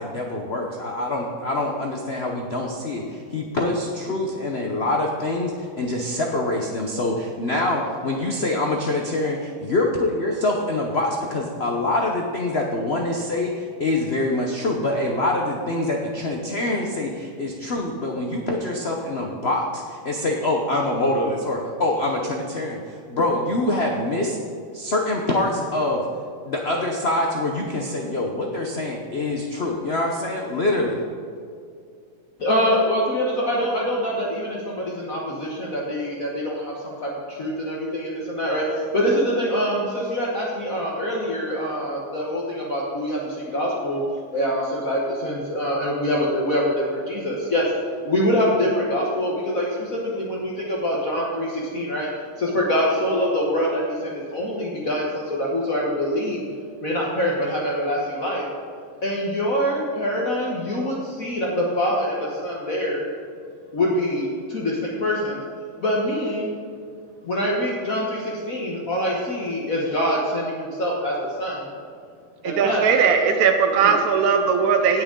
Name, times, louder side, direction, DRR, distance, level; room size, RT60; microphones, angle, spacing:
voice 1, 0.0-24.4 24.7-26.1 26.4-31.0, left 2 dB, 65° left, 0 dB, 0.6 m, -25 dB
voice 2, 32.4-44.0 44.3-47.7 48.0-52.1 52.4-56.4 56.8-58.4 59.0-63.1 63.7-65.4 65.8-66.5 67.2-71.6 72.4-72.8 73.8-73.9, equal, 45° left, -3 dB, 1.4 m, -24 dB
voice 3, 72.4-75.0, right 6 dB, 70° right, 5 dB, 0.9 m, -19 dB
17.5 x 6.3 x 3.8 m, 2.3 s
omnidirectional pair, 2.4 m